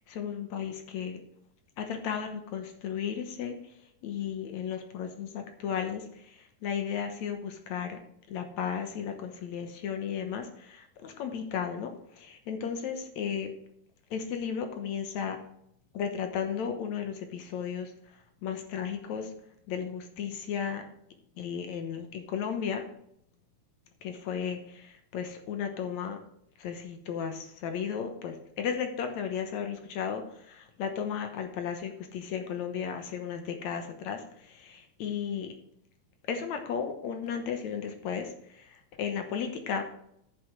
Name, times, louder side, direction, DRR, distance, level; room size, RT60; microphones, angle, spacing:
voice 1, 0.1-1.2 1.8-3.7 4.0-8.0 8.3-13.5 14.1-15.4 15.9-17.9 18.4-19.3 19.7-20.8 21.4-22.8 24.0-26.2 26.6-35.5 36.3-39.8, left 7 dB, 65° left, 6 dB, 2.2 m, -34 dB
9.5 x 7.0 x 5.2 m, 0.73 s
omnidirectional pair, 3.8 m